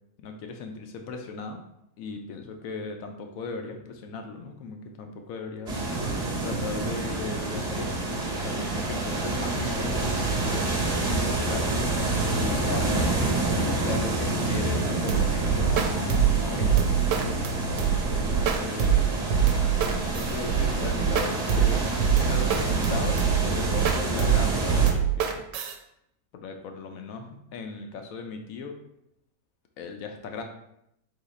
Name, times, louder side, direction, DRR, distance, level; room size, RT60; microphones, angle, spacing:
voice 1, 0.2-1.6 2.0-5.8 6.4-11.7 12.3-17.5 18.1-19.2 19.7-25.4 26.3-28.8 29.8-30.4, left 4 dB, 70° left, 4 dB, 0.9 m, -37 dB
sound 1, 5.7-24.9, right 2 dB, 30° right, 1.1 m, -28 dB
sound 2, 15.1-25.7, right 8 dB, 85° right, 1.1 m, -24 dB
3.9 x 2.9 x 4.1 m, 0.78 s
omnidirectional pair, 1.7 m